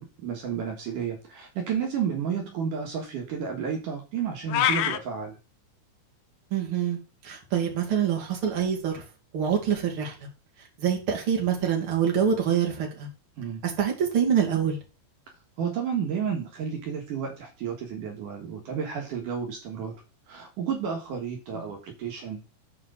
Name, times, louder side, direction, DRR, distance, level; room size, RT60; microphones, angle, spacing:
voice 1, 0.0-5.4 13.4-13.6 15.6-19.9 20.3-22.4, right 7 dB, 75° right, 2 dB, 3.1 m, -31 dB
sound 1, 4.5-5.0, left 10 dB, 75° left, 2.1 m, -23 dB
voice 2, 6.5-7.0 7.2-9.0 9.3-10.3 10.8-13.1 13.6-14.8 21.5-21.7, right 8 dB, 40° right, 0 dB, 3.0 m, -25 dB
7.5 x 4.9 x 6.4 m, 0.30 s
omnidirectional pair, 3.9 m